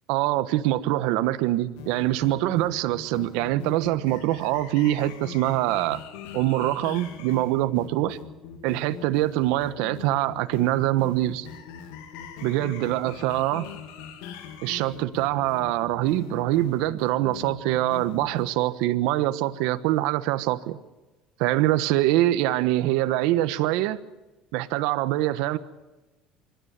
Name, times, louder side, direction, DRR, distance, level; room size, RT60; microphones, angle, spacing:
voice 1, 0.1-6.0 6.3-8.2 8.6-11.5 12.4-13.7 14.6-20.8 21.4-24.0 24.5-25.6, right 15 dB, 75° right, 1.2 m, -24 dB
sound 1, 1.8-18.5, left 8 dB, 85° left, 2.3 m, -41 dB
25.5 x 13.0 x 9.2 m
cardioid pair, 120°, 0 cm